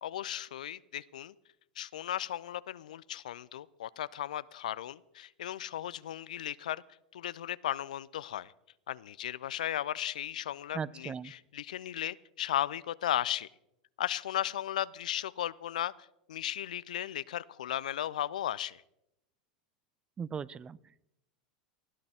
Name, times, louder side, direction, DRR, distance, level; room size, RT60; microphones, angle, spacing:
voice 1, 0.0-1.3 1.8-6.8 7.1-8.5 8.9-13.5 14.0-15.9 16.3-18.8, left 11 dB, 75° left, 20 dB, 0.4 m, -36 dB
voice 2, 10.7-11.3 20.2-21.1, right 6 dB, 25° right, 22 dB, 0.4 m, -39 dB
19.5 x 13.0 x 3.5 m, 0.86 s
hypercardioid pair, 90°, 4 cm